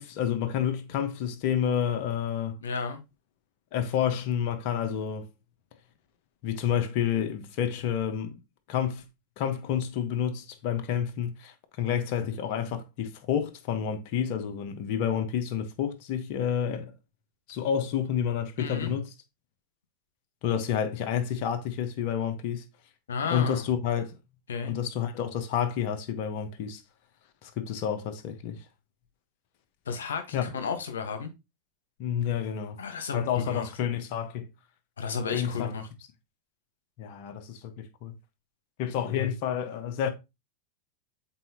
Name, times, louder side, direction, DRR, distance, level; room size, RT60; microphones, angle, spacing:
voice 1, 0.0-2.6 3.7-5.3 6.4-8.4 8.7-9.0 9.4-16.9 17.5-19.1 20.4-22.6 23.3-24.1 24.6-26.8 27.4-28.6 30.3-30.5 32.0-32.8 33.1-34.5 35.3-35.7 37.0-38.1 38.8-40.1, left 8 dB, 55° left, 1.3 m, -29 dB
voice 2, 2.6-3.0 18.6-18.9 23.1-23.6 24.5-24.7 29.8-31.3 32.8-33.7 35.0-35.9, left 5 dB, 80° left, 1.4 m, -33 dB
7.6 x 4.3 x 2.9 m
hypercardioid pair, 95°, 0 cm